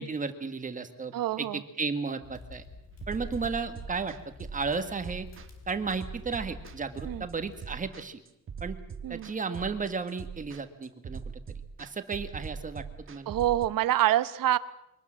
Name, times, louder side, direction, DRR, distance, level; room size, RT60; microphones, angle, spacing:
voice 1, 0.0-2.6 3.1-4.2 4.5-5.3 5.7-8.2 8.6-8.8 9.1-11.4 11.8-13.3, right 4 dB, 25° right, 9 dB, 1.7 m, -34 dB
voice 2, 1.1-1.6 7.0-7.3 9.0-9.3 13.3-14.6, right 13 dB, 85° right, 15 dB, 1.1 m, -26 dB
sound 1, 2.2-7.6, left 3 dB, 50° left, 4.4 m, -48 dB
sound 2, 3.0-13.7, right 5 dB, 40° right, 1.5 m, -42 dB
24.5 x 19.0 x 7.5 m, 0.83 s
wide cardioid pair, 175°, 33 cm